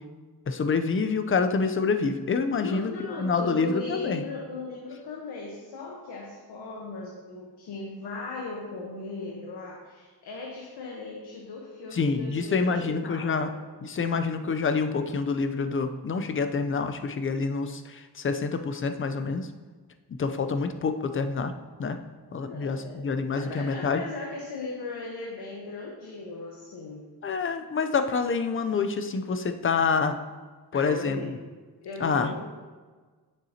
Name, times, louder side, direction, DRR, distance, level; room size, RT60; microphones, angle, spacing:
voice 1, 0.5-2.9 3.2-4.2 11.9-13.5 13.8-19.5 20.1-21.5 21.8-22.0 22.3-24.0 27.2-30.2 30.7-31.2 32.0-32.3, left 4 dB, 30° left, 8 dB, 0.5 m, -27 dB
voice 2, 2.6-13.6 22.4-23.1 23.3-27.1 30.7-31.4 31.8-32.6, left 3 dB, 90° left, -2 dB, 1.1 m, -38 dB
9.1 x 6.8 x 2.8 m, 1.4 s
cardioid pair, 110°, 39 cm